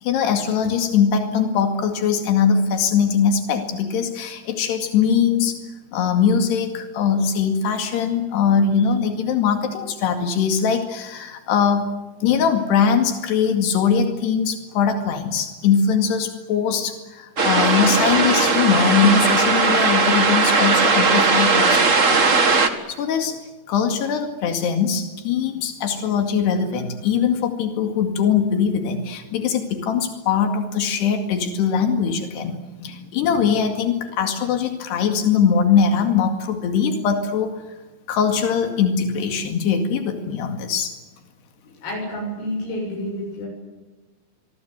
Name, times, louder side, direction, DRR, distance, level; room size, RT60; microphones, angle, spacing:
voice 1, 0.0-5.6 5.9-11.9 12.2-22.4 22.9-23.4 23.7-37.6 38.1-41.0, left 6 dB, 90° left, 6 dB, 4.3 m, -21 dB
sound 1, 17.4-22.7, right 4 dB, 45° right, 1.0 m, -18 dB
voice 2, 41.8-43.5, equal, 70° left, -3 dB, 9.8 m, -29 dB
28.0 x 23.0 x 8.1 m, 1.2 s
omnidirectional pair, 4.6 m